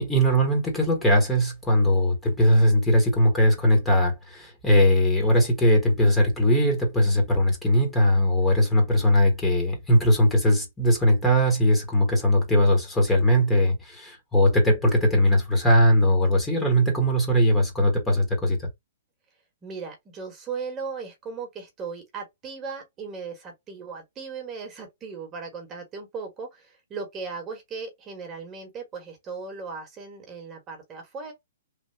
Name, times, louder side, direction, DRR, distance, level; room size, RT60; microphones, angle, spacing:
voice 1, 0.0-18.7, equal, 10° left, 1.3 m, -20 dB
voice 2, 19.6-31.3, right 5 dB, 20° right, 1.3 m, -37 dB
3.3 x 2.5 x 2.7 m
hypercardioid pair, 140°, 0 cm